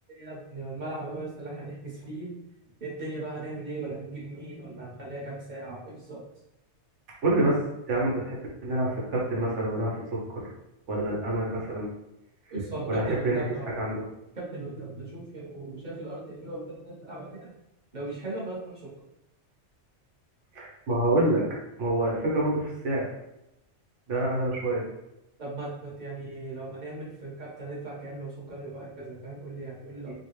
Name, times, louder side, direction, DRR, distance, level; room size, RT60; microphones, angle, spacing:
voice 1, 0.1-2.3 2.8-6.2 12.5-13.7 14.3-17.5 17.9-18.9 25.4-30.1, right 2 dB, 40° right, -6 dB, 1.5 m, -38 dB
voice 2, 7.2-7.6 7.9-10.0 10.3-10.5 10.9-11.9 12.9-13.4 13.8-14.0 20.5-21.4 21.8-23.1 24.1-24.8 30.1-30.2, right 1 dB, 90° right, -4 dB, 1.4 m, -27 dB
5.0 x 2.5 x 3.1 m, 0.88 s
omnidirectional pair, 1.2 m